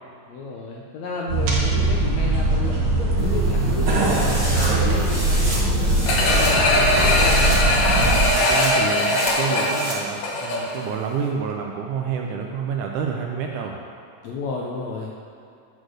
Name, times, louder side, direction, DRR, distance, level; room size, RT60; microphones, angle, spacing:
voice 1, 0.3-7.9 14.2-15.1, left 3 dB, 80° left, -2 dB, 1.6 m, -32 dB
sound 1, 1.3-8.3, right 2 dB, 55° right, 1.6 m, -21 dB
sound 2, 3.2-9.9, right 1 dB, 25° right, 0.9 m, -31 dB
sound 3, 6.1-10.8 11.2-11.3, left 2 dB, 65° left, 2.2 m, -21 dB
voice 2, 8.4-13.8, right 6 dB, 80° right, 1 dB, 1.8 m, -28 dB
9.7 x 4.3 x 6.3 m, 2.5 s
omnidirectional pair, 4.0 m